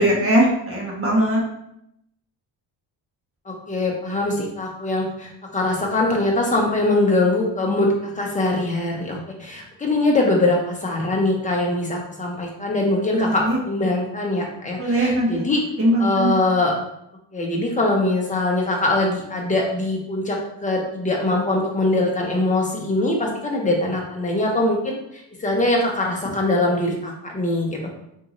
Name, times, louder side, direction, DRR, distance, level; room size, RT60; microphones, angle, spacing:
voice 1, 0.0-1.4 13.1-13.6 14.8-15.4 15.8-16.3, right 1 dB, 30° right, -4 dB, 1.2 m, -20 dB
voice 2, 3.5-15.6 16.0-16.7 17.3-27.9, left 2 dB, 15° left, -1 dB, 0.8 m, -22 dB
3.6 x 2.7 x 2.9 m, 0.78 s
cardioid pair, 110°, 44 cm